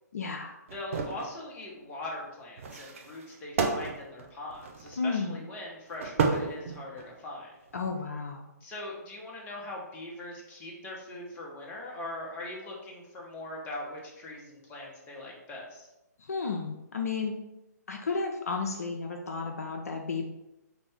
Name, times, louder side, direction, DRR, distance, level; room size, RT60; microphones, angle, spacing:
voice 1, 0.1-0.6 5.0-5.4 7.7-8.5 16.2-17.3 17.9-20.3, left 4 dB, 60° left, 2 dB, 0.5 m, -33 dB
voice 2, 0.7-7.5 8.6-15.9, left 1 dB, 15° left, -2 dB, 0.8 m, -41 dB
sound 1, 0.7-1.3 2.6-5.1 5.9-7.2 7.7-7.9, right 4 dB, 50° right, 0.5 m, -32 dB
4.2 x 2.6 x 3.4 m, 0.95 s
figure-of-eight pair, 130°, 9 cm